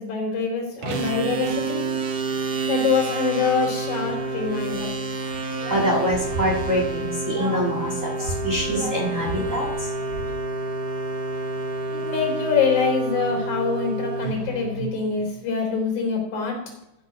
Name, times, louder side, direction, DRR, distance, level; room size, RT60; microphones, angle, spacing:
voice 1, 0.0-1.8 2.7-4.9 11.9-16.6, left 5 dB, 80° left, 1 dB, 5.1 m, -25 dB
sound 1, 0.8-15.4, right 3 dB, 60° right, 2.0 m, -29 dB
voice 2, 5.5-10.3, equal, 30° right, -1 dB, 1.8 m, -25 dB
14.0 x 6.3 x 5.1 m, 0.87 s
omnidirectional pair, 3.3 m